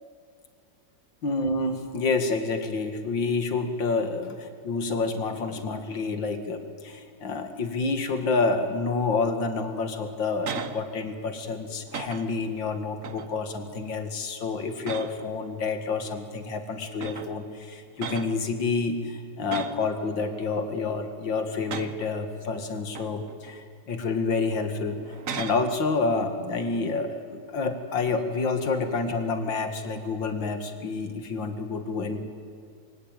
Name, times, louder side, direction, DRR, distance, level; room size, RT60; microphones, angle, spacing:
voice 1, 1.2-25.0 25.3-32.2, left 4 dB, 75° left, 7 dB, 2.8 m, -28 dB
sound 1, 10.0-10.8 11.2-11.5 11.9-12.5 13.0-13.4 13.8-14.2 14.8-15.4 16.4-16.5 17.0-17.4 18.0-18.4 19.5-19.9 20.4-21.0 21.5-22.1 22.7-23.5 24.0-24.1 25.0-25.7 29.1-29.5, right 6 dB, 45° right, 1.5 m, -37 dB
26.5 x 23.5 x 9.2 m, 2.3 s
omnidirectional pair, 2.1 m